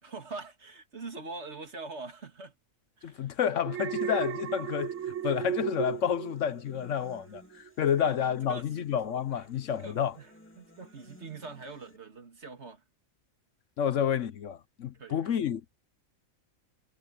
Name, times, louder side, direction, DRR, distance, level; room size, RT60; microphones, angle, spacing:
voice 1, 0.0-2.6 3.0-3.4 7.5-7.7 8.0-8.2 8.5-8.8 9.3-9.5 9.7-12.8 14.9-15.4, right 3 dB, 50° right, 2.5 m, -44 dB
voice 2, 3.0-5.0 5.2-7.4 7.8-10.1 13.8-15.8, left 8 dB, 65° left, 1.1 m, -29 dB
Alarm, 3.6-7.0 7.3-7.7, right 10 dB, 65° right, 0.8 m, -35 dB
sound 1, 4.0-12.0, left 1 dB, 10° left, 2.4 m, -56 dB
omnidirectional pair, 1.5 m